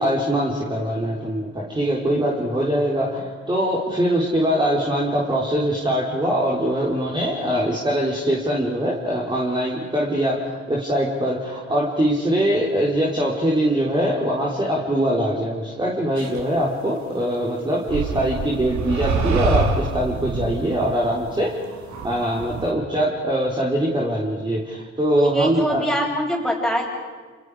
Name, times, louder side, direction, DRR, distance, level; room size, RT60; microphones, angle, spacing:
voice 1, 0.0-21.7 22.0-25.9, equal, 15° right, -4 dB, 4.2 m, -22 dB
sound 1, 16.2-16.4 17.9-22.7, right 4 dB, 70° right, 3.0 m, -26 dB
voice 2, 25.2-26.9, equal, ahead, -1 dB, 7.6 m, -23 dB
29.5 x 27.5 x 5.0 m, 1.5 s
cardioid pair, 90°, 30 cm